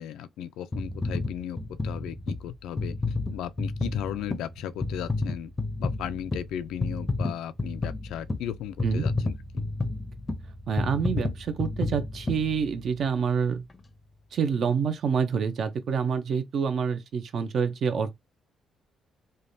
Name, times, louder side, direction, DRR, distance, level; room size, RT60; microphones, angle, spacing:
voice 1, 0.0-3.0 3.3-5.5 5.8-9.6, left 10 dB, 85° left, 0.3 m, -36 dB
sound 1, 0.7-13.1 13.7-13.8, left 3 dB, 25° left, 0.5 m, -31 dB
voice 2, 10.7-13.6 14.3-18.1, right 6 dB, 60° right, 0.5 m, -27 dB
3.2 x 2.2 x 2.6 m
cardioid pair, 90°, 0 cm